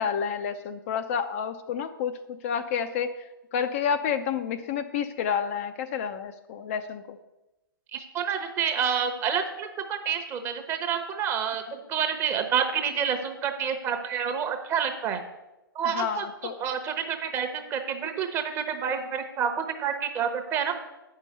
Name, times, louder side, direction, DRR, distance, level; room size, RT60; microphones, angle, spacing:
voice 1, 0.0-2.1 2.4-3.1 3.5-7.2 15.8-16.6, left 7 dB, 35° left, 8 dB, 0.5 m, -29 dB
voice 2, 7.9-15.2 15.7-16.2 16.6-20.7, right 7 dB, 20° right, 7 dB, 0.9 m, -28 dB
8.8 x 5.6 x 6.7 m, 0.99 s
figure-of-eight pair, 120°, 12 cm